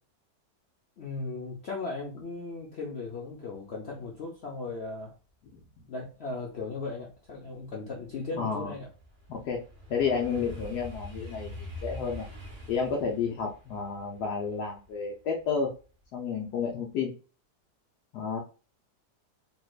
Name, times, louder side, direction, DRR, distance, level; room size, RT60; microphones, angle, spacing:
voice 1, 1.0-5.1 5.9-8.9, left 3 dB, 50° left, -2 dB, 0.8 m, -37 dB
sound 1, 7.2-16.0 16.5-16.8, left 1 dB, 40° right, 1.2 m, -45 dB
voice 2, 8.3-8.7 9.3-9.6 9.9-12.2 12.7-15.7 16.1-17.1 18.1-18.4, left 5 dB, 70° left, -1 dB, 1.3 m, -31 dB
4.6 x 3.1 x 2.3 m, 0.35 s
omnidirectional pair, 1.9 m